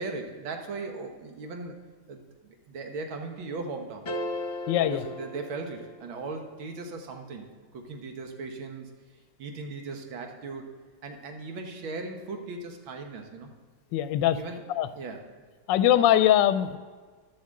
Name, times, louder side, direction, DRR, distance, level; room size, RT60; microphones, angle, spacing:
voice 1, 0.0-1.8 2.1-2.3 2.7-4.0 4.8-7.5 7.7-8.9 9.4-10.7 11.0-13.5 14.3-14.6 14.9-15.2, right 3 dB, 90° right, 4 dB, 2.0 m, -38 dB
sound 1, 4.1-6.3, left 1 dB, 45° left, 1.0 m, -36 dB
voice 2, 4.7-5.0 13.9-14.4 14.7-14.9 15.7-16.8, left 11 dB, 75° left, 12 dB, 1.2 m, -21 dB
11.5 x 7.3 x 7.5 m, 1.5 s
omnidirectional pair, 2.1 m